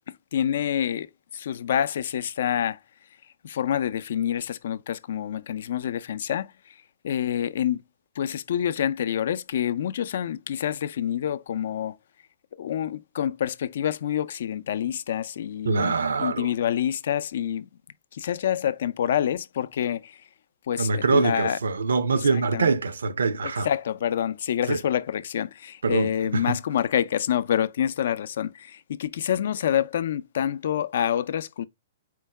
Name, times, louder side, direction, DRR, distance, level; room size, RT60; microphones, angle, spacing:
voice 1, 0.1-1.1 1.3-2.8 3.4-6.5 7.0-7.8 8.2-12.0 12.6-17.7 18.1-20.2 20.7-21.6 22.1-22.7 23.4-31.7, left 10 dB, 65° left, 0.4 m, -27 dB
voice 2, 15.6-16.5 20.8-23.7 24.7-24.8 25.8-26.4, right 4 dB, 90° right, 0.6 m, -24 dB
4.5 x 2.2 x 4.5 m
hypercardioid pair, 140°, 0 cm